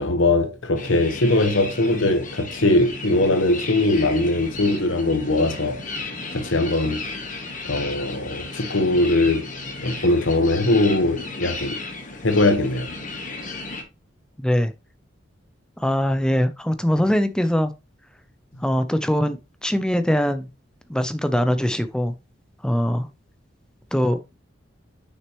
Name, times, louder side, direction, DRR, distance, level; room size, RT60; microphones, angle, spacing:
voice 1, 0.0-5.8 6.3-7.0 7.6-9.5 9.8-11.8 12.2-12.9, left 2 dB, 75° left, 1.1 m, -21 dB
sound 1, 0.8-13.8, left 3 dB, 40° left, 1.4 m, -34 dB
voice 2, 14.4-14.7 15.8-17.7 18.6-20.5 20.9-22.1 22.6-23.1 23.9-24.3, equal, 5° left, 0.5 m, -22 dB
6.4 x 6.1 x 3.0 m
head